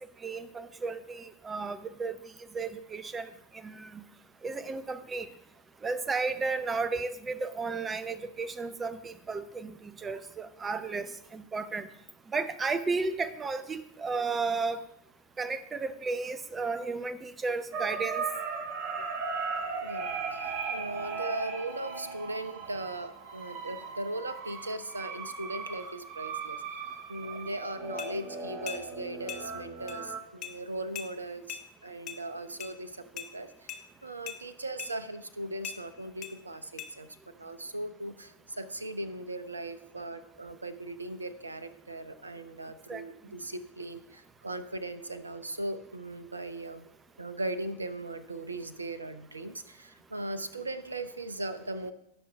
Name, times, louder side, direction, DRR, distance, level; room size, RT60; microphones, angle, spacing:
voice 1, 0.2-2.1 2.5-3.3 3.6-4.0 4.4-5.3 5.8-11.9 12.3-14.8 15.4-18.2 42.9-43.0, right 4 dB, 15° right, 14 dB, 0.7 m, -33 dB
sound 1, 17.7-30.2, right 5 dB, 40° right, 1.2 m, -37 dB
voice 2, 19.8-26.8 27.1-37.1 37.4-46.9 47.2-51.9, right 2 dB, 80° right, 13 dB, 0.7 m, -38 dB
sound 2, 28.0-28.1 28.7-28.8 29.3-29.4 29.9-30.0 30.4-30.5 30.9-31.1 31.5-31.6 32.1-32.2 32.6-32.7 33.2-33.3 33.7-33.8 34.3-34.4 34.8-34.9 35.6-35.8 36.2-36.3 36.8-36.9, left 10 dB, 35° left, 1.1 m, -40 dB
18.0 x 6.3 x 3.4 m, 0.75 s
figure-of-eight pair, 90°, 0 cm